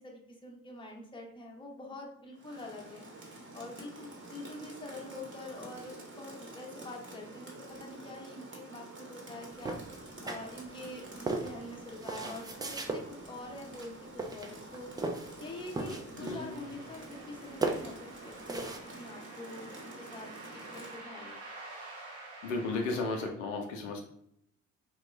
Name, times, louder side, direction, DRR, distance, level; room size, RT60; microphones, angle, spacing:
voice 1, 0.0-3.1 3.5-9.8 10.2-14.9 15.4-18.7 18.9-21.4, left 2 dB, 15° left, 1 dB, 0.7 m, -46 dB
Rain, 2.3-21.1, right 2 dB, 30° right, 1.0 m, -48 dB
sound 1, 9.6-10.8 11.3-13.0 13.7-13.9 14.2-15.4 15.7-16.6 16.9-17.4 17.6-18.8, right 3 dB, 10° right, 0.3 m, -36 dB
voice 2, 16.2-16.5 22.4-24.0, left 3 dB, 75° left, 3 dB, 0.5 m, -34 dB
sound 2, 16.3-23.3, right 2 dB, 70° right, 1.1 m, -49 dB
2.9 x 2.2 x 3.0 m, 0.72 s
figure-of-eight pair, 45°, 39 cm